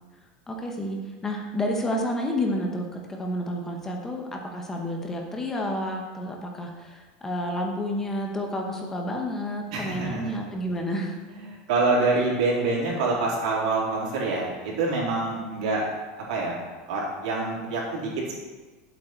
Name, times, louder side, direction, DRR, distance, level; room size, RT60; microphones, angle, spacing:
voice 1, 0.5-11.2, left 1 dB, 10° left, 1 dB, 1.0 m, -30 dB
voice 2, 9.7-10.3 11.3-15.9 16.2-16.6 16.9-18.3, right 3 dB, 90° right, -3 dB, 3.4 m, -26 dB
10.5 x 7.9 x 4.5 m, 1.3 s
supercardioid pair, 175°, 4 cm